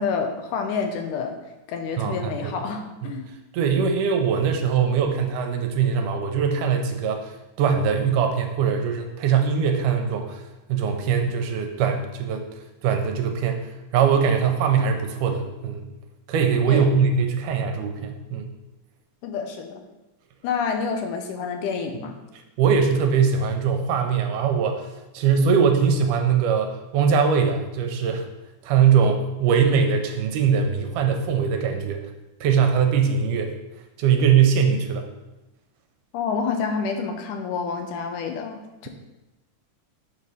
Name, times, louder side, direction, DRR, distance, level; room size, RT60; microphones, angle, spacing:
voice 1, 0.0-1.4 1.7-3.3 16.7-16.9 19.2-19.8 20.4-22.2 36.1-38.9, left 5 dB, 80° left, 5 dB, 2.1 m, -28 dB
voice 2, 2.0-2.5 3.0-3.2 3.5-10.4 10.7-15.9 16.3-18.5 22.6-24.9 25.1-28.3 28.6-32.1 32.4-33.5 34.0-35.1, right 6 dB, 85° right, 4 dB, 2.1 m, -22 dB
6.6 x 3.2 x 5.4 m, 1.0 s
omnidirectional pair, 3.7 m